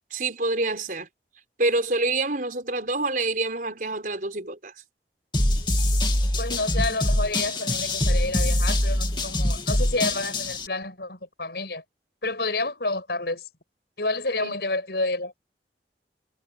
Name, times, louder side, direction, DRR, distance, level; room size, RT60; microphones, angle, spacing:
voice 1, 0.1-1.1 1.6-4.7 14.3-14.6, right 2 dB, 50° right, 4.9 m, -27 dB
sound 1, 5.3-10.7, left 1 dB, 25° left, 2.7 m, -24 dB
voice 2, 6.4-11.8 12.2-13.4 14.0-15.4, left 2 dB, 65° left, 7.3 m, -29 dB
head